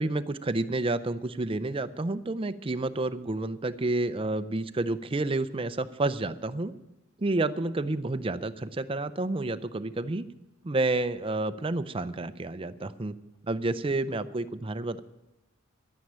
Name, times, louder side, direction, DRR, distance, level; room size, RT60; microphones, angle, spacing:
voice 1, 0.0-6.7 7.2-10.2 10.6-13.1 13.5-15.0, right 2 dB, 25° right, 11 dB, 0.5 m, -30 dB
11.5 x 9.5 x 8.7 m, 0.99 s
head